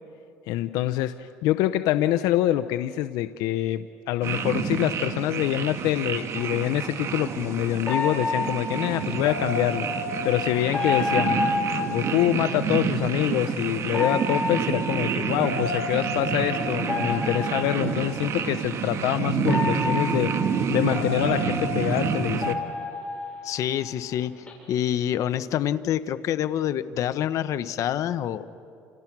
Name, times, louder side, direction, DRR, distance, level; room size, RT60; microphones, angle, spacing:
voice 1, 0.5-9.9 10.2-11.4 11.9-20.3 20.7-22.6, left 14 dB, 75° left, 10 dB, 0.7 m, -25 dB
sound 1, 4.2-22.5, right 6 dB, 50° right, 2.0 m, -28 dB
sound 2, 6.4-6.5 7.9-12.6 13.9-18.1 18.9-19.0 19.5-23.9 24.2-24.5, left 3 dB, 20° left, 7.2 m, -30 dB
voice 2, 23.4-28.5, left 10 dB, 55° left, 12 dB, 1.1 m, -27 dB
30.0 x 29.5 x 6.1 m, 2.6 s
cardioid pair, 115°, 6 cm